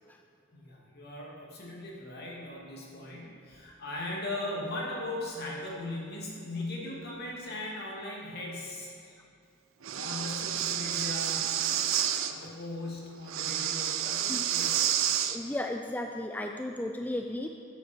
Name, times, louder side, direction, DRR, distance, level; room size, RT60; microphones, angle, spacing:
voice 1, 0.5-9.2 9.9-11.5 12.2-14.9, left 2 dB, 55° left, -3 dB, 2.5 m, -38 dB
Breathing, 9.8-12.3 13.3-15.4, right 10 dB, 85° right, 0.6 m, -29 dB
voice 2, 15.3-17.5, left 1 dB, 10° left, 3 dB, 0.4 m, -34 dB
14.0 x 8.2 x 4.5 m, 2.5 s
head